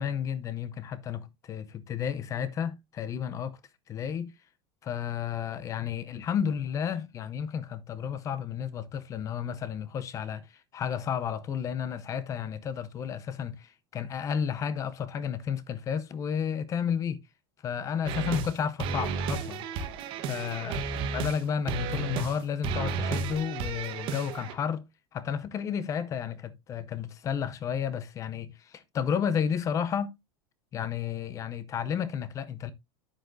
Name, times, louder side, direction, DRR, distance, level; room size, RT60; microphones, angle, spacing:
voice 1, 0.0-3.6 3.9-4.3 4.8-10.5 10.7-17.2 17.6-19.7 20.3-20.8 21.1-24.8 25.1-30.1 30.7-32.7, left 8 dB, 25° left, 0.6 m, -32 dB
sound 1, 18.0-18.5 18.8-21.4 21.7-22.4 22.6-24.5, right 4 dB, 40° right, 1.2 m, -32 dB
9.0 x 8.0 x 2.6 m
supercardioid pair, 160°, 14 cm